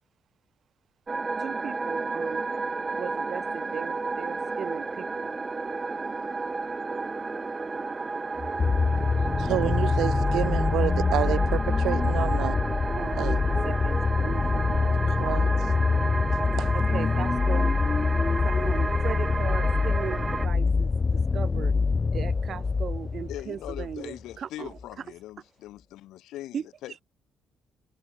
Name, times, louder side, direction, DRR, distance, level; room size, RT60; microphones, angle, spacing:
sound 1, 1.1-20.5, right 3 dB, 25° right, 0.7 m, -32 dB
voice 1, 1.4-2.5 2.9-5.3 12.9-15.0 16.7-17.8 18.4-21.8 22.1-25.0 26.5-26.7, right 8 dB, 55° right, 3.0 m, -38 dB
sound 2, 8.4-24.0 24.8-24.9, left 4 dB, 30° left, 2.2 m, -25 dB
voice 2, 9.4-12.6 13.2-13.4 15.2-15.5 16.6-16.7, right 14 dB, 85° right, 1.6 m, -29 dB
voice 3, 23.3-27.0, left 15 dB, 85° left, 3.9 m, -41 dB
cardioid pair, 90°, 0 cm